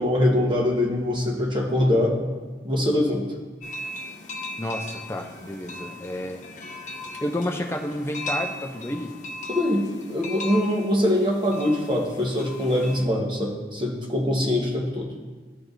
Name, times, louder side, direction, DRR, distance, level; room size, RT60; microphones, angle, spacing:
voice 1, 0.0-2.2 2.6-3.3 9.5-15.1, left 1 dB, 25° right, -1 dB, 1.0 m, -23 dB
sound 1, 3.6-13.0, left 1 dB, 40° left, 0.8 m, -37 dB
voice 2, 4.6-6.4 7.2-9.1, left 1 dB, 15° left, 2 dB, 0.5 m, -30 dB
13.0 x 4.5 x 2.6 m, 1.4 s
head